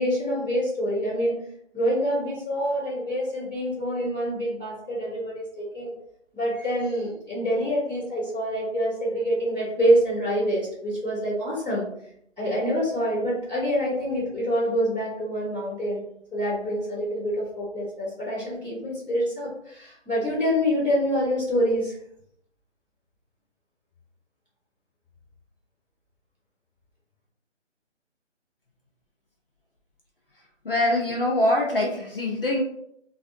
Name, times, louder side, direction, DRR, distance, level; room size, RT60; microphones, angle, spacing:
voice 1, 0.0-1.4 1.7-5.9 6.3-11.9 12.4-16.0 16.3-21.9, equal, 5° right, -21 dB, 0.9 m, -26 dB
voice 2, 30.6-32.6, left 1 dB, 50° left, -2 dB, 0.6 m, -23 dB
2.5 x 2.4 x 2.5 m, 0.72 s
hypercardioid pair, 175°, 36 cm